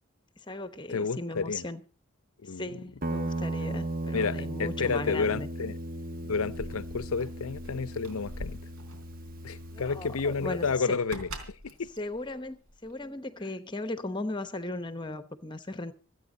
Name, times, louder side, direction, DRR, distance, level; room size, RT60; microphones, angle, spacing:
voice 1, 0.4-1.8 2.5-5.5 9.7-11.0 12.0-15.9, left 2 dB, 20° left, 1.0 m, -37 dB
voice 2, 0.9-1.6 2.4-2.7 4.1-5.8 6.2-8.6 9.4-11.3 11.6-11.9, left 5 dB, 80° left, 0.6 m, -30 dB
Guitar, 3.0-10.8, right 1 dB, 40° right, 1.0 m, -37 dB
Keys jangling, 6.2-13.1, equal, 85° right, 3.5 m, -45 dB
27.0 x 9.1 x 4.0 m
head